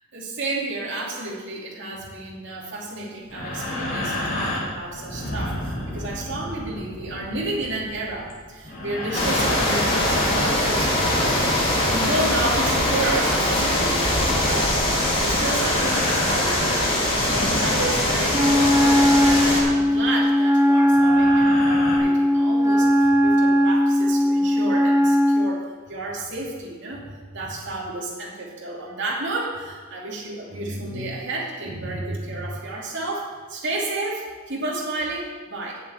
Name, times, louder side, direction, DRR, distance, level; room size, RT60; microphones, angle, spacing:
voice 1, 0.1-14.7 15.2-16.8 17.2-35.8, right 2 dB, 60° right, -3 dB, 2.6 m, -31 dB
sound 1, 3.3-20.1 20.8-22.0, left 1 dB, 45° left, 3.7 m, -32 dB
sound 2, 9.1-19.6, left 1 dB, 30° left, 3.2 m, -22 dB
Wind instrument woodwind instrument, 18.3-25.5, equal, 15° right, 0.7 m, -18 dB
8.1 x 7.4 x 8.8 m, 1.5 s
head